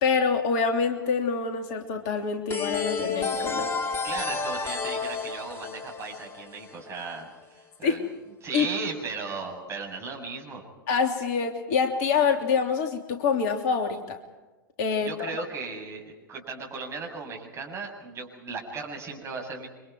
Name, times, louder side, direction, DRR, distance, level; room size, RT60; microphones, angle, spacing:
voice 1, 0.0-3.7 7.8-8.0 8.5-8.7 10.9-14.2 14.8-15.3, left 5 dB, 45° left, 4 dB, 3.2 m, -26 dB
sound 1, 2.5-7.1, left 4 dB, 20° left, 2.9 m, -31 dB
voice 2, 4.0-8.0 8.4-10.6 15.0-19.7, right 4 dB, 25° right, 1 dB, 7.5 m, -36 dB
30.0 x 25.5 x 4.7 m, 1.1 s
figure-of-eight pair, 95°, 11 cm